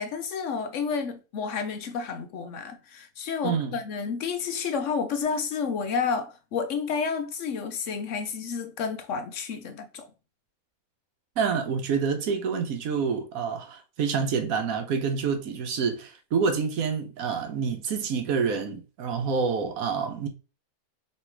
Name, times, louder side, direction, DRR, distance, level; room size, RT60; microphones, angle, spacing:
voice 1, 0.0-10.1, left 5 dB, 65° left, 0.9 m, -30 dB
voice 2, 3.4-3.8 11.4-20.3, right 5 dB, 75° right, 1.2 m, -27 dB
3.3 x 3.2 x 4.5 m
omnidirectional pair, 1.5 m